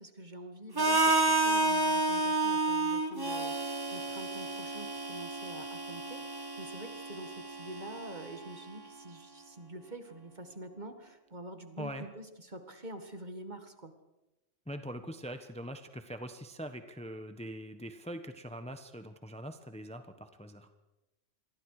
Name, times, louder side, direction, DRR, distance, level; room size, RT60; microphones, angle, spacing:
voice 1, 0.0-13.9, right 1 dB, 35° right, 7 dB, 2.0 m, -46 dB
Harmonica, 0.8-8.7, right 2 dB, 20° right, 1.4 m, -31 dB
voice 2, 14.7-20.7, equal, 5° left, 8 dB, 1.1 m, -42 dB
27.5 x 22.5 x 4.9 m, 0.98 s
omnidirectional pair, 1.3 m